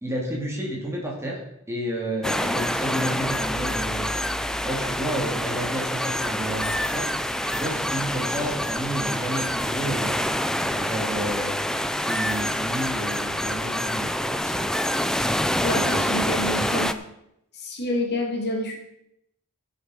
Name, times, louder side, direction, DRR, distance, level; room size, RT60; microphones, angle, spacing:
voice 1, 0.0-1.4 1.7-4.1 4.6-7.1 7.4-10.1 10.6-11.6 11.9-14.1 14.4-14.6, right 1 dB, 10° right, -3 dB, 2.9 m, -30 dB
sound 1, 2.2-16.9, left 1 dB, 5° left, 0.5 m, -26 dB
voice 2, 15.6-16.9 17.5-18.8, equal, 50° left, 1 dB, 2.0 m, -27 dB
15.5 x 6.7 x 5.1 m, 0.80 s
head